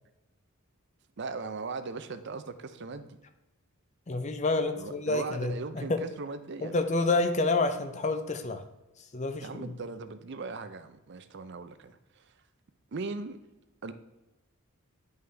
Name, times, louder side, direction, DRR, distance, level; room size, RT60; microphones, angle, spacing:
voice 1, 1.2-3.2 4.7-6.8 9.4-12.3 12.9-13.4 13.8-13.9, right 4 dB, 55° right, 10 dB, 0.5 m, -39 dB
voice 2, 4.1-6.0 6.6-8.6 9.1-9.7, left 3 dB, 30° left, 7 dB, 0.6 m, -28 dB
9.4 x 5.5 x 3.4 m, 1.0 s
head